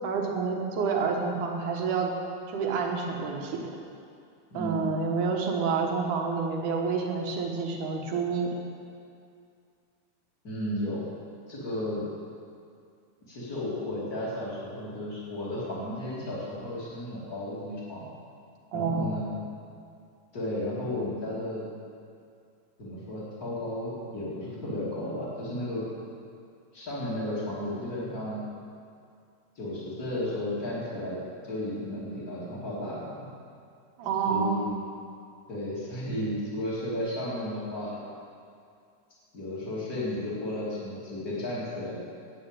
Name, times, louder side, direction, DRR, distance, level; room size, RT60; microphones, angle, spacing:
voice 1, 0.0-2.1 2.5-3.6 4.5-8.5 18.7-19.2 34.0-34.7, right 5 dB, 65° right, 1 dB, 2.4 m, -28 dB
voice 2, 4.5-4.9 10.4-11.1 11.5-12.1 13.3-18.1 18.7-19.4 20.3-21.7 22.8-25.9 26.7-28.4 29.5-33.3 34.3-34.8 35.5-38.0 39.3-42.0, left 1 dB, 25° left, -12 dB, 2.4 m, -33 dB
11.0 x 8.6 x 8.9 m, 2.3 s
omnidirectional pair, 4.7 m